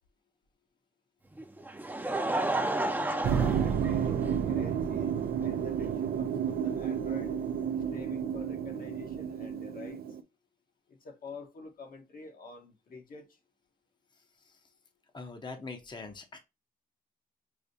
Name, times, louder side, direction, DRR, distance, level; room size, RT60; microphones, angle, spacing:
Laughter, 1.4-4.6 5.4-5.5 7.0-7.1, right 2 dB, 10° right, 0.6 m, -32 dB
voice 1, 3.1-5.1 5.4-7.3 7.9-10.0 11.0-13.3, left 3 dB, 65° left, 1.1 m, -47 dB
sound 1, 3.2-10.2, right 8 dB, 75° right, 0.4 m, -31 dB
voice 2, 15.1-16.4, left 3 dB, 30° left, 0.7 m, -43 dB
4.8 x 2.1 x 2.5 m
cardioid pair, 70°, 16 cm